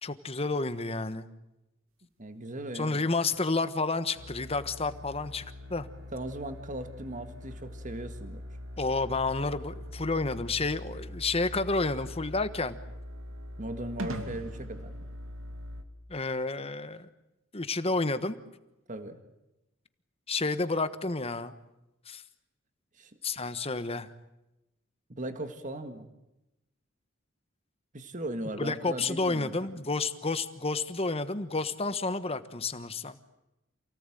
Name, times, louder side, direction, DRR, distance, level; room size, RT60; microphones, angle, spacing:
voice 1, 0.0-1.2 2.7-5.4 5.7-5.9 8.8-12.8 16.1-17.1 17.5-18.4 20.3-21.5 22.1-22.2 23.2-24.1 28.6-33.2, left 3 dB, 30° left, 12 dB, 1.3 m, -30 dB
voice 2, 2.2-3.1 6.1-8.4 13.6-15.0 18.9-19.2 23.0-23.1 25.1-26.1 27.9-29.8, right 1 dB, 40° right, 8 dB, 1.8 m, -38 dB
sound 1, 4.2-15.8, equal, 85° right, 2.7 m, -42 dB
28.5 x 18.0 x 9.2 m, 0.93 s
head